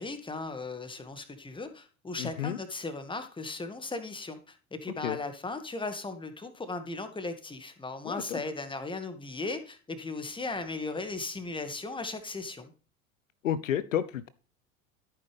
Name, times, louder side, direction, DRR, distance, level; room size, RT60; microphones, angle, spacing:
voice 1, 0.0-12.7, left 3 dB, 10° left, 2.0 m, -37 dB
voice 2, 2.2-2.6 5.0-5.2 8.0-8.4 13.4-14.3, left 10 dB, 70° left, 0.8 m, -31 dB
14.5 x 9.0 x 3.5 m
figure-of-eight pair, 75°, 41 cm